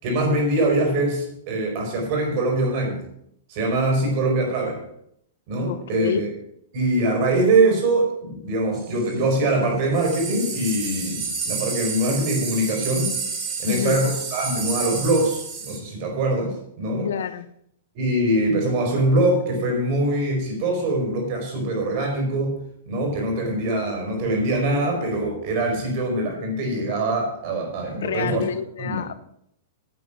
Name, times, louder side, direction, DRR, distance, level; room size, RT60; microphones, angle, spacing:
voice 1, 0.0-3.0 3.5-4.8 5.5-6.3 6.7-13.1 13.6-17.1 17.9-22.6 22.9-28.4 28.8-29.0, right 2 dB, 45° right, 2 dB, 4.8 m, -23 dB
voice 2, 5.7-6.2 13.6-14.0 17.0-17.5 28.0-29.1, left 8 dB, 80° left, 13 dB, 0.8 m, -27 dB
sound 1, 8.7-9.1 9.9-15.8, right 5 dB, 25° right, 2.5 m, -30 dB
10.5 x 8.0 x 6.0 m, 0.75 s
hypercardioid pair, 155°, 0 cm